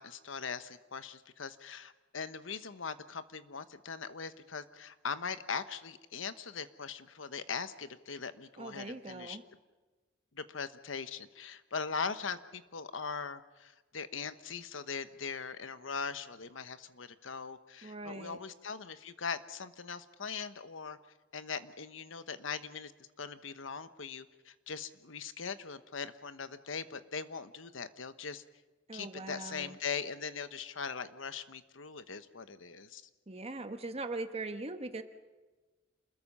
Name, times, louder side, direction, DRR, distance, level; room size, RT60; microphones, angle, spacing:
voice 1, 0.0-9.4 10.3-21.0 21.3-22.9 23.2-28.4 28.9-33.0, left 5 dB, 80° left, 12 dB, 1.1 m, -40 dB
voice 2, 8.6-9.4 17.8-18.4 28.9-29.8 33.3-35.0, right 2 dB, 30° right, 8 dB, 1.3 m, -41 dB
27.5 x 21.0 x 5.6 m, 1.2 s
head